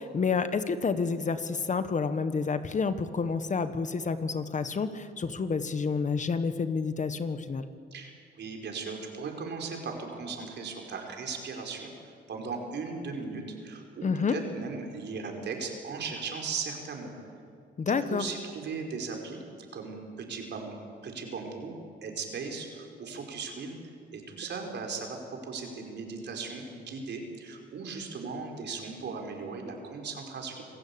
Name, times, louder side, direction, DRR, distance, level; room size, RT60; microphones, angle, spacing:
voice 1, 0.0-7.7 14.0-14.4 17.8-18.2, left 5 dB, 40° left, 11 dB, 1.4 m, -29 dB
voice 2, 8.4-17.1 18.1-19.4 19.7-20.7 21.0-23.8 24.1-30.6, right 4 dB, 60° right, 2 dB, 4.9 m, -37 dB
27.0 x 15.5 x 8.7 m, 2.3 s
cardioid pair, 90°, 20 cm